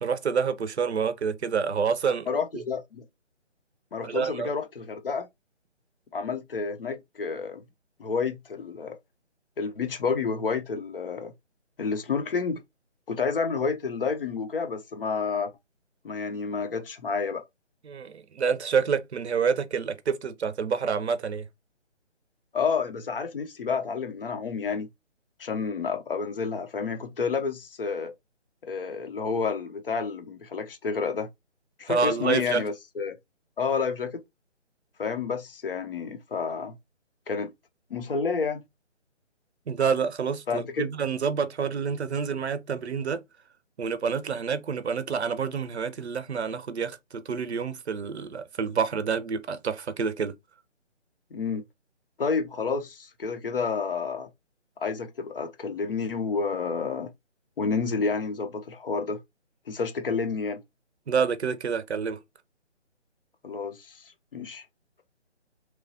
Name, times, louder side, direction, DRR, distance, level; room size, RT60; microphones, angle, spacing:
voice 1, 0.0-2.3 2.5-2.6 4.0-4.5 17.8-21.5 31.9-32.6 39.7-43.2 43.8-50.3 61.1-62.2, right 6 dB, 65° right, 0.6 m, -28 dB
voice 2, 2.3-3.1 3.9-5.3 6.1-7.6 8.0-9.0 9.6-11.3 11.8-12.6 13.1-15.5 16.0-17.4 22.5-24.9 25.4-28.1 28.6-31.3 31.8-33.1 33.6-34.2 35.0-36.8 37.3-37.5 37.9-38.6 40.5-40.9 51.3-51.6 52.2-54.3 54.8-57.1 57.6-59.2 59.7-60.6 63.4-64.0 64.3-64.6, left 5 dB, 50° left, 0.6 m, -30 dB
3.0 x 2.2 x 2.6 m
figure-of-eight pair, 150°, 36 cm